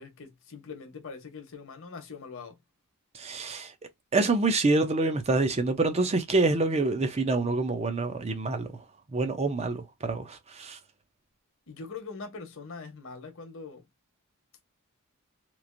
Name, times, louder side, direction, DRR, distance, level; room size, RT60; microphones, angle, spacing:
voice 1, 0.0-2.6 11.7-13.8, left 4 dB, 65° left, 0.9 m, -42 dB
voice 2, 3.1-3.7 4.1-8.7 9.1-10.8, right 3 dB, 30° right, 0.6 m, -26 dB
3.0 x 2.5 x 2.5 m
head